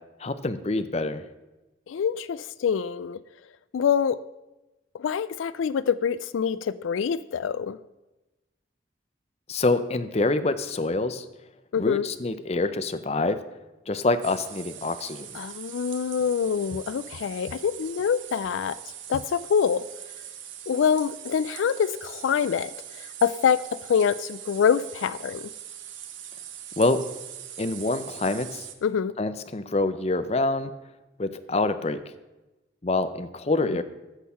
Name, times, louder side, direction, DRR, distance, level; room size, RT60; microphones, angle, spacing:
voice 1, 0.2-1.2 9.5-11.2 11.8-13.4 13.9-15.3 26.8-27.0 27.6-28.7 29.2-30.7 31.2-32.0 32.8-33.8, left 2 dB, 35° left, 11 dB, 0.6 m, -26 dB
voice 2, 1.9-3.2 3.7-4.2 4.9-7.8 11.7-12.0 15.3-18.8 19.1-19.9 20.7-23.6 23.9-25.5 28.8-29.1 33.6-33.8, left 7 dB, 85° left, 17 dB, 0.4 m, -25 dB
sound 1, 14.2-28.7, right 10 dB, 85° right, 1.1 m, -42 dB
14.0 x 6.5 x 5.6 m, 1.1 s
head